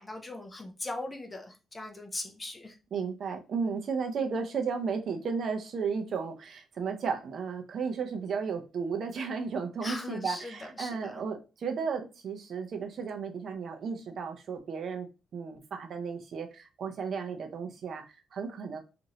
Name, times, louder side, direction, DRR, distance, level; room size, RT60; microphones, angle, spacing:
voice 1, 0.0-2.8 9.8-11.2, left 2 dB, 15° left, 3 dB, 0.5 m, -39 dB
voice 2, 2.9-18.8, right 5 dB, 50° right, 5 dB, 0.5 m, -34 dB
3.0 x 2.5 x 2.7 m, 0.31 s
cardioid pair, 155°, 0 cm